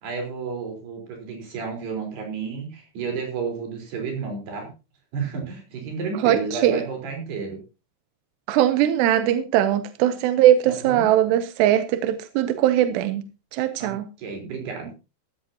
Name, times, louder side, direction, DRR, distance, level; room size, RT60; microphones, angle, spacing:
voice 1, 0.0-4.7 5.1-7.6 10.7-11.1 13.8-15.0, right 5 dB, 60° right, 5.9 m, -31 dB
voice 2, 6.2-6.8 8.5-13.2 13.5-14.1, right 12 dB, 75° right, 2.7 m, -20 dB
16.0 x 13.0 x 2.8 m
omnidirectional pair, 5.5 m